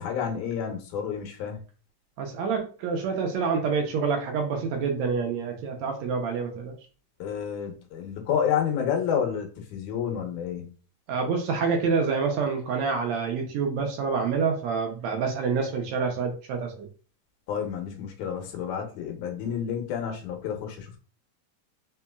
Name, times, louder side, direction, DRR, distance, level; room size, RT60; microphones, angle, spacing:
voice 1, 0.0-1.6 7.2-10.8 17.5-21.0, left 8 dB, 75° left, 3 dB, 2.4 m, -30 dB
voice 2, 2.2-6.7 11.1-16.9, right 5 dB, 70° right, 3 dB, 1.9 m, -27 dB
4.6 x 4.1 x 2.3 m, 0.37 s
omnidirectional pair, 3.6 m